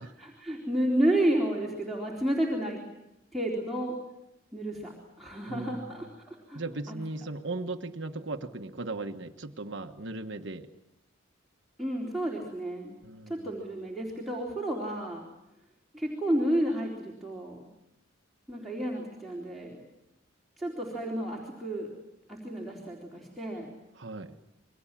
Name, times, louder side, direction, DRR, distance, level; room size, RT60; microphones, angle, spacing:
voice 1, 0.2-2.8 3.3-3.9 4.5-4.9 5.2-6.6 6.9-7.0 11.8-13.0 13.3-15.3 15.9-17.6 18.5-19.8 20.6-21.9 22.3-23.7, right 1 dB, ahead, -5 dB, 3.8 m, -31 dB
voice 2, 5.5-6.1 6.5-10.7 13.0-13.5 23.9-24.4, right 2 dB, 60° right, 5 dB, 1.4 m, -37 dB
28.0 x 23.0 x 7.6 m, 0.92 s
head